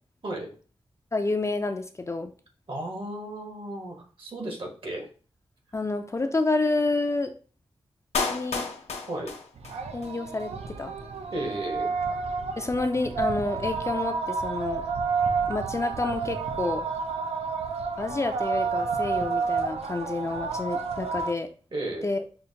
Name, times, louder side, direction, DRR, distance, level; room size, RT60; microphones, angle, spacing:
voice 1, 1.1-2.3 5.7-7.3 8.3-8.7 9.9-10.9 12.6-14.8 15.5-16.8 18.0-21.5 22.0-22.2, left 3 dB, 25° left, 6 dB, 0.4 m, -29 dB
voice 2, 2.7-5.1 9.1-9.3 11.3-11.9 21.7-22.1, right 1 dB, 55° right, 1 dB, 1.2 m, -34 dB
Clapping, 8.1-10.1 10.4-10.5, left 4 dB, 85° left, 0.6 m, -31 dB
sound 1, 9.6-21.3, right 5 dB, 75° right, 0.4 m, -30 dB
5.5 x 2.1 x 2.7 m, 0.38 s
wide cardioid pair, 85°, 11 cm